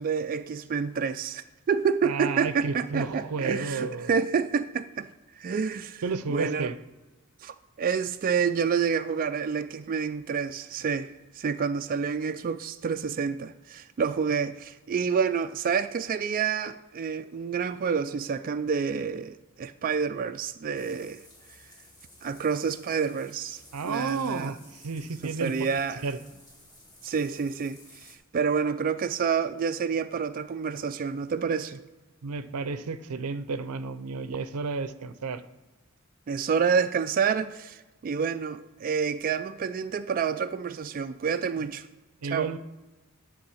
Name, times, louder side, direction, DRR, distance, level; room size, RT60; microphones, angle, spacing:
voice 1, 0.0-5.1 5.4-6.0 6.3-6.7 7.4-21.2 22.2-24.5 25.2-26.0 27.0-31.8 36.3-41.9 42.3-42.5, right 6 dB, 40° right, 0.3 m, -28 dB
voice 2, 2.0-4.1 6.0-6.8 23.7-25.6 26.0-26.2 32.2-35.4 42.2-42.6, right 4 dB, 90° right, 0.6 m, -32 dB
sound 1, 20.7-28.2, left 1 dB, 20° left, 1.6 m, -54 dB
10.5 x 3.8 x 7.0 m
head